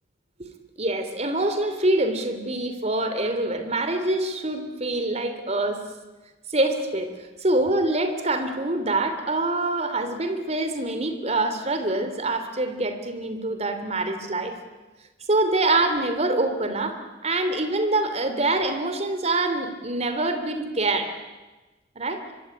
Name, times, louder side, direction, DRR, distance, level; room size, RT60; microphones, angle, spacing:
voice 1, 0.4-5.8 6.5-7.1 7.4-14.5 15.3-21.1 21.9-22.2, right 2 dB, 40° right, 8 dB, 3.0 m, -25 dB
24.5 x 23.5 x 9.9 m, 1.2 s
head